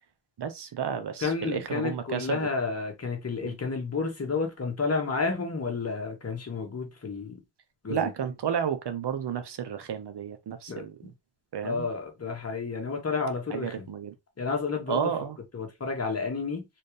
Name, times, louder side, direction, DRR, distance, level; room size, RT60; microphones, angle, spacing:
voice 1, 0.4-2.5 3.4-3.6 7.9-10.9 11.5-11.9 13.5-14.1 14.9-15.4, right 8 dB, 70° right, 0.9 m, -32 dB
voice 2, 1.2-7.4 7.8-8.1 10.7-10.8 11.6-13.8 14.4-15.1 15.5-16.6, left 4 dB, 35° left, 1.5 m, -31 dB
4.3 x 3.5 x 3.2 m
wide cardioid pair, 145°, 42 cm